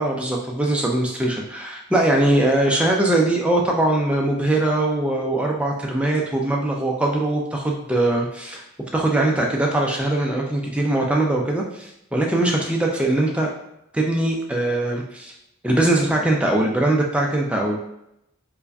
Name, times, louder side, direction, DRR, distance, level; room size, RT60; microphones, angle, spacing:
voice 1, 0.0-8.6 8.9-13.5 13.9-15.3 15.6-17.8, right 1 dB, 5° right, -1 dB, 0.4 m, -21 dB
4.5 x 2.2 x 2.6 m, 0.82 s
head